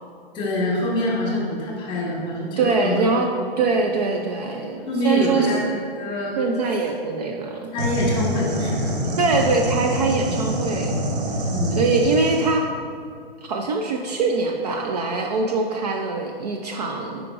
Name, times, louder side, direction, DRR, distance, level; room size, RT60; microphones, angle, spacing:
voice 1, 0.3-3.1 4.4-4.5 4.9-6.4 7.7-9.6 11.5-11.8, left 1 dB, 15° left, -3 dB, 1.4 m, -25 dB
voice 2, 2.6-3.3 3.6-5.6 6.4-7.7 9.2-11.0 11.8-12.6 13.4-17.3, right 3 dB, 45° right, 2 dB, 0.4 m, -23 dB
sound 1, 7.8-12.6, equal, 60° right, 1.1 m, -26 dB
9.4 x 5.0 x 2.5 m, 2.3 s
hypercardioid pair, 145°, 30 cm